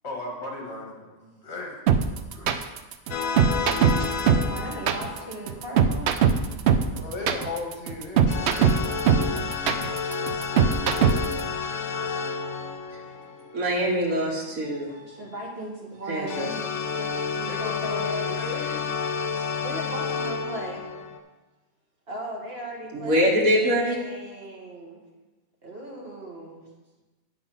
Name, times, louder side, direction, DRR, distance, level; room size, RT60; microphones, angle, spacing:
voice 1, 0.0-1.1 1.4-1.8 2.3-2.6 6.9-8.7 17.5-18.9, left 3 dB, 50° left, -1 dB, 2.0 m, -35 dB
sound 1, 1.9-11.4, right 7 dB, 65° right, 0.8 m, -21 dB
sound 2, 3.1-5.5 8.3-13.9 16.3-21.2, left 5 dB, 75° left, 1.1 m, -30 dB
voice 2, 4.0-6.1 8.7-11.2 14.9-16.7 17.0-17.1 17.4-17.6 17.8-18.4 18.8-20.9 22.1-25.0 25.6-26.6, right 1 dB, 45° right, -2 dB, 2.1 m, -39 dB
voice 3, 13.5-15.0 16.1-16.5 22.9-24.0, equal, 85° right, -3 dB, 1.8 m, -24 dB
8.5 x 5.6 x 5.8 m, 1.2 s
omnidirectional pair, 1.4 m